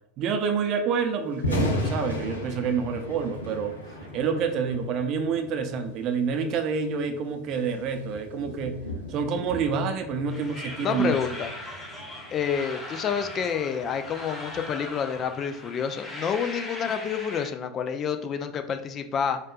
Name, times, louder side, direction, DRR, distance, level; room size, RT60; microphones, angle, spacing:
voice 1, 0.2-3.7 4.1-8.8 9.1-11.2, right 5 dB, 45° right, 6 dB, 0.5 m, -28 dB
Thunder, 1.3-15.4, left 1 dB, 85° left, 0.7 m, -36 dB
sound 1, 10.3-17.5, left 1 dB, 10° left, 1.1 m, -39 dB
voice 2, 10.8-11.5 12.3-19.4, left 7 dB, 35° left, 8 dB, 0.4 m, -28 dB
4.3 x 2.4 x 2.4 m, 0.80 s
figure-of-eight pair, 80°, 0 cm